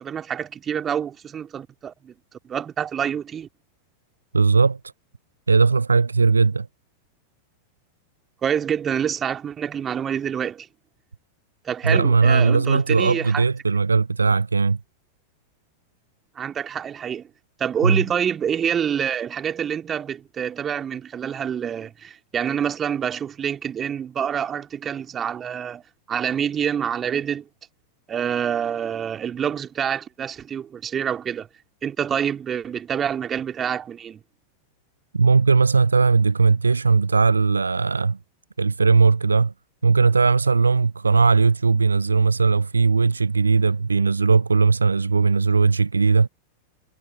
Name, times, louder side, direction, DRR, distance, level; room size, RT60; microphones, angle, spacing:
voice 1, 0.0-2.1 2.4-3.5 8.4-10.7 11.6-13.4 16.4-17.2 17.6-25.8 26.1-27.5 28.1-31.5 31.8-34.2, right 8 dB, 25° right, 2.7 m, -27 dB
voice 2, 4.3-4.8 5.5-6.7 11.8-14.8 17.8-18.0 35.1-38.2 38.6-39.5 39.8-46.3, right 4 dB, 75° right, 0.5 m, -18 dB
figure-of-eight pair, 90°, 0 cm